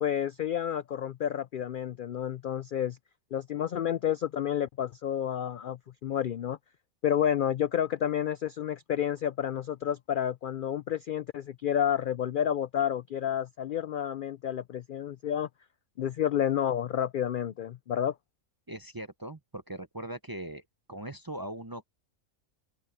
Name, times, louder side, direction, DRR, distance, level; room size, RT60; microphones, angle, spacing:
voice 1, 0.0-3.0 3.3-6.6 7.0-15.5 16.0-18.1, left 9 dB, 65° left, 0.5 m, -30 dB
voice 2, 18.7-20.6 20.9-21.9, right 1 dB, 20° right, 0.6 m, -40 dB
open air
omnidirectional pair, 1.4 m